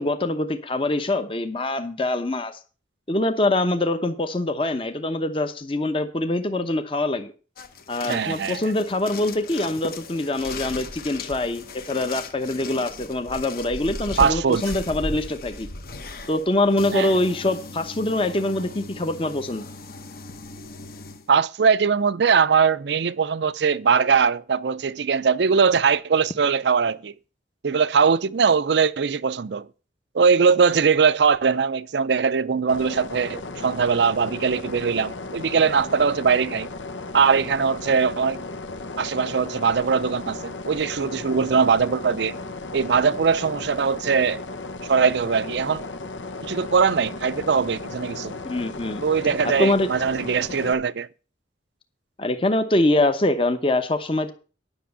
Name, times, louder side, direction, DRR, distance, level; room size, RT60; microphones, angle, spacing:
voice 1, 0.0-2.6 3.1-7.3 7.9-15.7 16.3-19.7 48.4-49.0 49.6-49.9 52.2-54.3, left 2 dB, 30° left, 0.8 m, -24 dB
sound 1, 7.6-21.3, left 2 dB, 50° left, 1.1 m, -37 dB
voice 2, 8.1-8.6 14.2-14.6 16.9-17.1 21.3-27.1 27.6-29.7 30.1-36.7 37.1-38.4 39.0-42.4 42.7-44.4 44.9-45.9 46.4-48.4 49.0-51.1, right 6 dB, 70° right, 0.5 m, -21 dB
sound 2, 32.7-50.7, left 3 dB, 90° left, 0.9 m, -35 dB
10.0 x 6.2 x 6.9 m
head